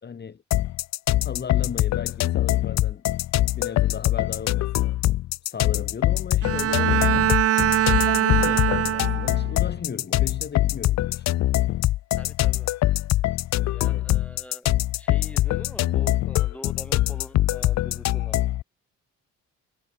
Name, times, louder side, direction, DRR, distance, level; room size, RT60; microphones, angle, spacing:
voice 1, 0.0-0.4 1.2-3.0 3.5-5.0 5.4-7.3 7.9-11.5 13.8-14.1, left 6 dB, 35° left, 1.3 m, -36 dB
sound 1, 0.5-18.6, left 15 dB, 65° left, 0.5 m, -23 dB
Bowed string instrument, 6.4-9.6, right 12 dB, 50° right, 0.6 m, -23 dB
voice 2, 12.1-12.7 13.6-18.4, left 1 dB, 5° left, 6.3 m, -44 dB
cardioid pair, 90°, 30 cm